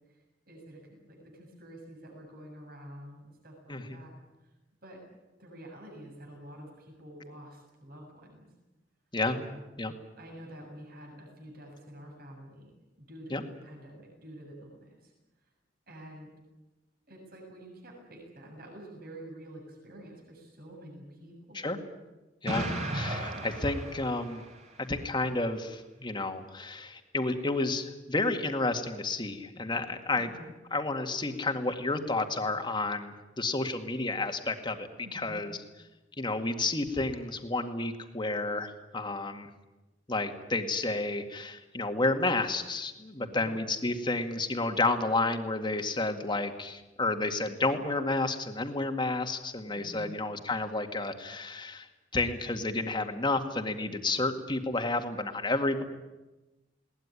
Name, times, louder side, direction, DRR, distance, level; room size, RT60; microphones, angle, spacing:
voice 1, 0.1-4.1 4.4-4.5 4.8-5.0 5.4-8.5 9.3-9.7 10.2-12.7 13.0-15.1 15.9-16.3 17.1-21.6 23.3-23.5 30.2-30.6 35.0-35.4 43.2-43.6 49.7-50.2, right 1 dB, 55° right, 0 dB, 7.1 m, -48 dB
voice 2, 3.7-4.0 9.1-9.4 9.8-9.9 13.3-13.4 21.5-21.8 22.4-24.4 24.9-30.3 30.7-35.6 36.2-39.5 40.1-51.9 52.1-55.8, left 2 dB, 25° left, 6 dB, 2.0 m, -31 dB
Explosion, 22.5-24.6, right 1 dB, 40° right, 4.2 m, -35 dB
21.0 x 18.5 x 10.0 m, 1.1 s
head